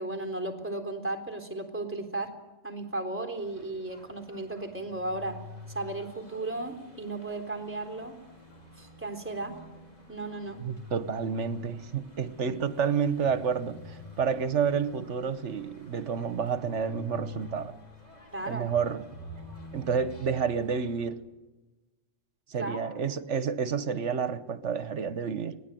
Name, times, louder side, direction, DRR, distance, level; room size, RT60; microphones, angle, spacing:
voice 1, 0.0-2.3 2.6-5.4 5.7-8.2 8.8-9.6 10.1-10.6 18.3-18.7 22.5-23.0, right 2 dB, 10° right, 3.8 m, -35 dB
sound 1, 3.4-21.1, left 2 dB, 35° left, 5.8 m, -47 dB
voice 2, 10.6-17.7 18.5-19.0 19.7-21.2 22.5-25.6, right 6 dB, 65° right, 1.5 m, -30 dB
25.0 x 19.0 x 9.3 m
omnidirectional pair, 1.3 m